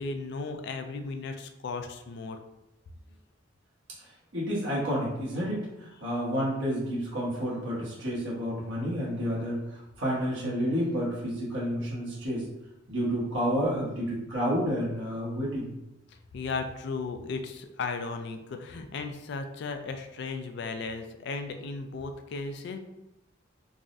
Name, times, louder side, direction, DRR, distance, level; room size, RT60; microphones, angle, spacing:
voice 1, 0.0-2.4 16.3-22.8, left 4 dB, 60° left, 7 dB, 0.3 m, -35 dB
voice 2, 4.3-5.7 6.0-9.6 10.0-12.5 12.9-15.7, equal, 75° right, -6 dB, 1.1 m, -30 dB
3.5 x 2.1 x 2.5 m, 0.91 s
head